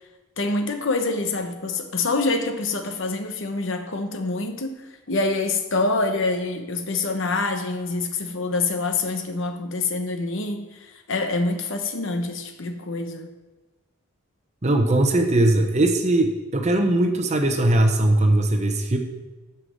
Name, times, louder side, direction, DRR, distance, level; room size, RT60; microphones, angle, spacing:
voice 1, 0.4-4.8 5.1-13.3, left 3 dB, 60° left, 6 dB, 0.9 m, -26 dB
voice 2, 14.6-19.0, right 1 dB, 30° right, 5 dB, 0.9 m, -20 dB
8.1 x 5.8 x 6.4 m, 1.2 s
head